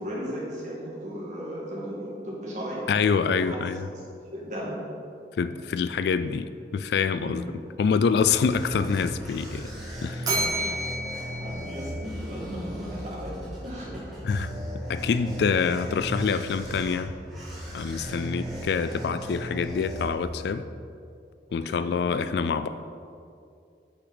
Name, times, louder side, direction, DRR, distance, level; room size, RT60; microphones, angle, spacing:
voice 1, 0.0-2.9 3.2-3.6 4.3-4.8 7.2-7.4 10.4-10.7 11.4-14.2 18.0-18.3 21.6-22.2, equal, 40° right, -5 dB, 2.0 m, -36 dB
voice 2, 2.9-3.9 5.4-7.5 7.8-9.7 10.0-10.3 14.2-14.5 14.9-17.1 17.7-20.7 21.5-22.7, left 5 dB, 70° left, 12 dB, 0.3 m, -26 dB
sound 1, 7.7-20.6, equal, ahead, 1.9 m, -37 dB
Bell, 10.2-12.5, right 1 dB, 20° right, 1.4 m, -31 dB
8.4 x 5.8 x 4.0 m, 2.5 s
head